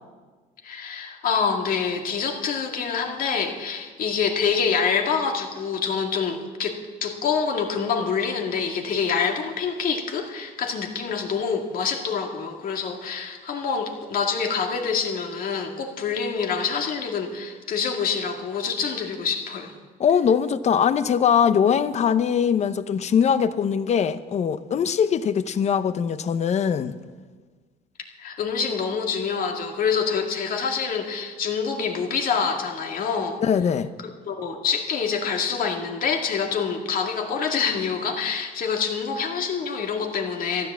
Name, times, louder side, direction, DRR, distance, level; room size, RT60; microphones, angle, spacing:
voice 1, 0.6-19.7 28.2-33.4 34.3-40.7, left 6 dB, 55° left, 2.1 m, -26 dB
voice 2, 20.0-27.0 33.4-33.9, left 7 dB, 40° left, 0.7 m, -21 dB
13.5 x 10.5 x 7.4 m
cardioid pair, 110°, 17 cm